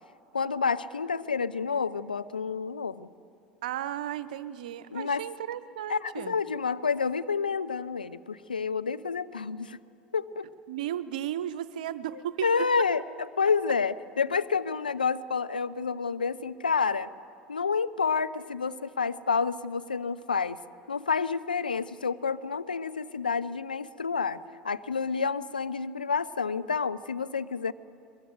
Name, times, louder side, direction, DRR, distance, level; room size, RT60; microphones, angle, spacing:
voice 1, 0.3-3.1 4.9-5.3 5.9-9.8 10.1-10.5 12.1-13.0 13.4-17.1 17.5-20.6 20.9-27.7, left 5 dB, 80° left, 14 dB, 0.6 m, -29 dB
voice 2, 3.6-6.4 10.7-12.5 12.8-12.9, right 11 dB, 65° right, 15 dB, 0.8 m, -34 dB
22.0 x 22.0 x 7.8 m, 2.6 s
figure-of-eight pair, 75°, 5 cm